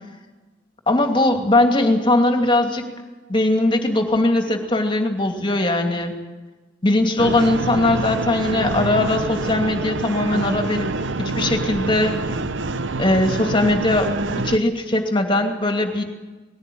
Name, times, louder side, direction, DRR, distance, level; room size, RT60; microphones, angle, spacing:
voice 1, 0.9-2.8 3.3-6.1 6.8-10.9 11.2-12.2 13.0-14.1 14.4-16.0, left 2 dB, 25° left, 4 dB, 2.7 m, -20 dB
sound 1, 7.2-14.6, right 3 dB, 90° right, 0.9 m, -26 dB
20.0 x 16.5 x 9.5 m, 1.2 s
head